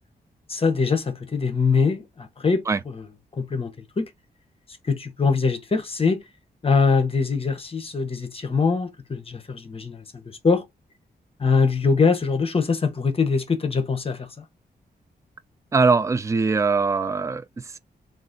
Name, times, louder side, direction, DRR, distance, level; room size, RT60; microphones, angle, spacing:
voice 1, 0.5-2.9 3.3-4.1 4.8-6.2 6.6-10.6 11.4-14.4, left 5 dB, 35° left, 0.9 m, -23 dB
voice 2, 15.7-17.8, right 4 dB, 15° right, 0.4 m, -22 dB
3.8 x 2.5 x 3.8 m
wide cardioid pair, 115°, 17 cm